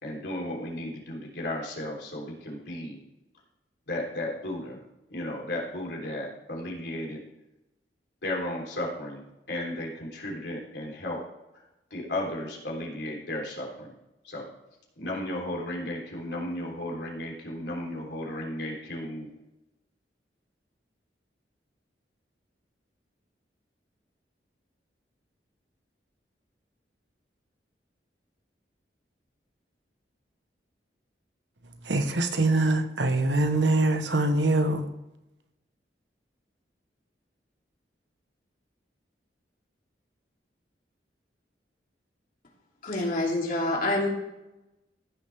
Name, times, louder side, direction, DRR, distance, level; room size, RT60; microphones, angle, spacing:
voice 1, 0.0-3.0 3.9-4.8 5.1-7.2 8.2-11.2 11.9-13.9 14.2-14.4 15.0-19.3, left 1 dB, 70° left, 3.4 m, -34 dB
voice 2, 31.9-34.9, right 2 dB, 85° right, 1.1 m, -24 dB
voice 3, 42.8-44.1, left 2 dB, 50° left, 2.9 m, -26 dB
15.0 x 6.8 x 3.4 m
head